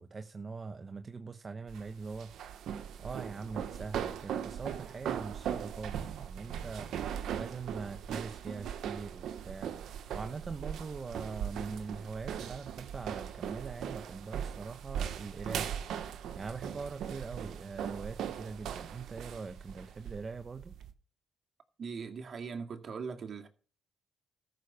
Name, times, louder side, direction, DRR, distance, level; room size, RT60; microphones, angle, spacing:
voice 1, 0.0-2.3 2.7-15.7 16.3-20.8, right 4 dB, 35° right, 1.1 m, -42 dB
sound 1, 1.7-20.9, right 9 dB, 75° right, 1.5 m, -39 dB
voice 2, 21.8-23.5, right 5 dB, 50° right, 2.3 m, -40 dB
14.0 x 6.7 x 6.9 m
cardioid pair, 90°, 0 cm